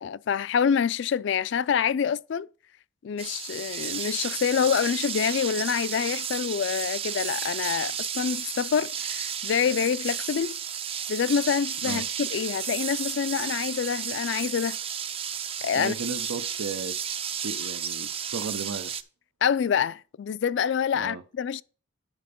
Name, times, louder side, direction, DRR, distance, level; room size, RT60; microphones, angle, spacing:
voice 1, 0.0-2.5 3.0-10.5 11.1-14.8 15.6-15.9 19.4-21.6, left 7 dB, 60° left, 0.3 m, -26 dB
sound 1, 3.2-19.0, right 8 dB, 30° right, 0.4 m, -33 dB
voice 2, 15.7-16.9 17.4-18.9 20.9-21.2, right 4 dB, 90° right, 0.7 m, -34 dB
9.7 x 4.3 x 5.2 m
head